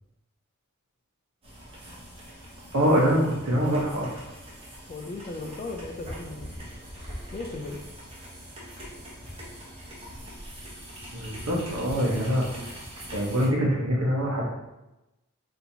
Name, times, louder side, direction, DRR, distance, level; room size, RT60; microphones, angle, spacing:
sound 1, 1.4-13.5, equal, 25° right, 0.9 m, -42 dB
voice 1, 2.7-4.1 11.1-12.5 13.1-14.5, equal, 75° right, -2 dB, 0.9 m, -24 dB
voice 2, 4.9-6.5 7.3-7.8, left 2 dB, 30° left, 4 dB, 0.3 m, -36 dB
4.3 x 2.8 x 2.7 m, 0.99 s
head